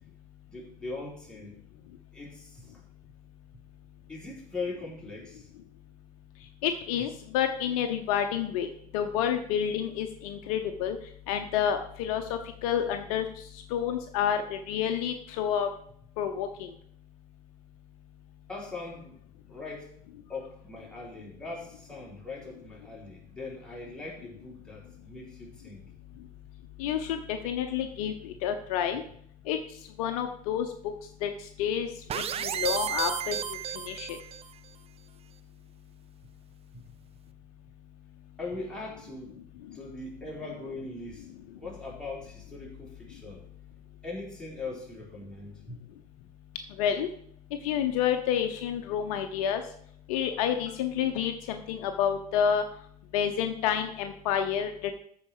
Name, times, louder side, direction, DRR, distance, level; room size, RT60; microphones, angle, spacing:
voice 1, 0.5-1.6 2.1-2.8 4.1-5.5 18.5-19.2 19.5-19.9 20.3-25.9 36.7-36.8 38.4-39.4 39.7-43.4 44.0-45.8, left 3 dB, 5° left, -5 dB, 4.4 m, -40 dB
voice 2, 6.6-8.7 8.9-11.0 11.3-12.2 12.6-13.3 13.7-15.7 16.2-16.7 26.8-29.0 29.5-29.6 30.0-30.7 31.2-31.3 31.6-31.9 32.1-33.4 33.8-34.2 46.8-47.1 47.6-49.6 50.1-52.6 53.1-54.9, left 9 dB, 60° left, 7 dB, 0.9 m, -29 dB
sound 1, 32.1-34.5, right 9 dB, 30° right, 0.6 m, -32 dB
13.5 x 4.8 x 4.9 m, 0.65 s
hypercardioid pair, 75°, 20 cm